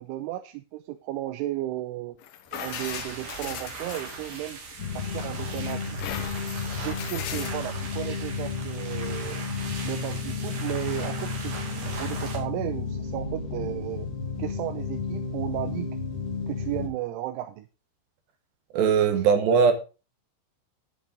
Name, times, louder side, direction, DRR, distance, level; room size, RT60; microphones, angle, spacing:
voice 1, 0.0-2.2 2.5-4.6 4.9-6.0 6.8-9.4 9.8-14.1 14.4-15.9 16.5-17.7 19.1-19.2, right 14 dB, 85° right, 3.2 m, -34 dB
sound 1, 2.2-4.7 5.2-7.5, left 10 dB, 75° left, 3.3 m, -39 dB
sound 2, 2.5-12.4, right 4 dB, 50° right, 3.9 m, -39 dB
sound 3, 4.8-16.9, left 5 dB, 45° left, 3.2 m, -32 dB
voice 2, 18.7-19.7, right 6 dB, 70° right, 3.2 m, -20 dB
10.5 x 10.0 x 3.7 m
omnidirectional pair, 5.5 m